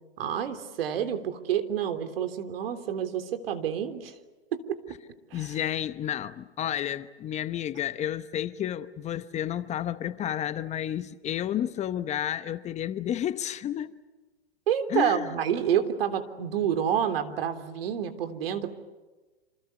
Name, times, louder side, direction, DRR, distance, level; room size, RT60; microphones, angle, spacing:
voice 1, 0.2-4.1 4.5-4.8 5.3-5.6 14.7-18.7, right 9 dB, 65° right, 3.4 m, -28 dB
voice 2, 5.3-14.0 14.9-15.3, left 11 dB, 20° left, 0.9 m, -31 dB
28.0 x 27.5 x 7.0 m
hypercardioid pair, 125°, 31 cm